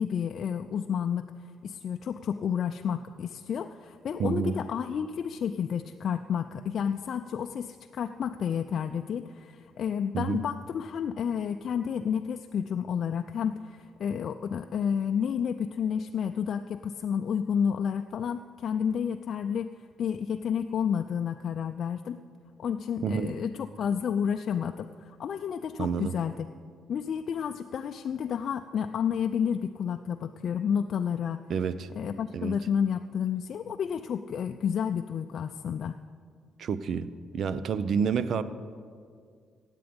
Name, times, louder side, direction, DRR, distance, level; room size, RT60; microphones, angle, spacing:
voice 1, 0.0-1.3 1.6-19.7 20.0-22.2 22.6-26.3 26.9-31.4 32.0-36.0, left 7 dB, 60° left, 6 dB, 0.4 m, -30 dB
voice 2, 4.2-4.6 10.1-10.4 23.0-23.4 25.8-26.1 31.5-31.9 32.3-32.5 36.6-37.1 37.3-38.4, right 6 dB, 60° right, 15 dB, 0.6 m, -28 dB
16.0 x 9.1 x 5.3 m, 2.1 s
supercardioid pair, 55°, 0 cm